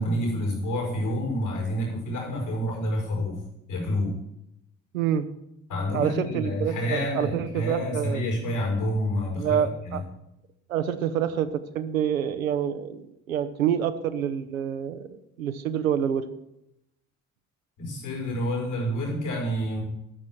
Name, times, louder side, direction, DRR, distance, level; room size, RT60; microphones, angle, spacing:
voice 1, 0.0-3.4 3.7-4.1 5.7-10.0 17.8-19.8, equal, 80° left, -1 dB, 5.1 m, -28 dB
voice 2, 4.9-5.3 5.9-8.2 9.4-10.0 10.7-15.1 15.4-16.3, right 9 dB, 85° right, 9 dB, 0.7 m, -27 dB
12.5 x 6.3 x 7.6 m, 0.83 s
figure-of-eight pair, 40°, 40 cm